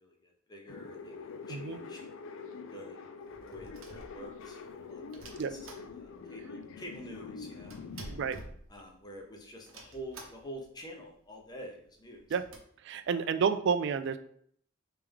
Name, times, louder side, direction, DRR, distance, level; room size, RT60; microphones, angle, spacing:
voice 1, 0.0-2.0 2.7-3.0 3.4-5.6 6.0-7.8 8.7-12.2 13.0-13.2, equal, 20° left, 0 dB, 0.7 m, -47 dB
sound 1, 0.7-8.4, left 5 dB, 75° left, 0.4 m, -45 dB
sound 2, 3.2-4.6 5.1-6.4 6.6-6.7 6.9-9.2 9.7-10.7 11.1-11.2 11.4-11.5 12.0-12.6, right 2 dB, 85° right, 0.7 m, -50 dB
voice 2, 8.1-8.4 12.3-12.4 12.8-14.2, right 6 dB, 60° right, 11 dB, 0.3 m, -30 dB
3.4 x 3.3 x 3.4 m, 0.63 s
head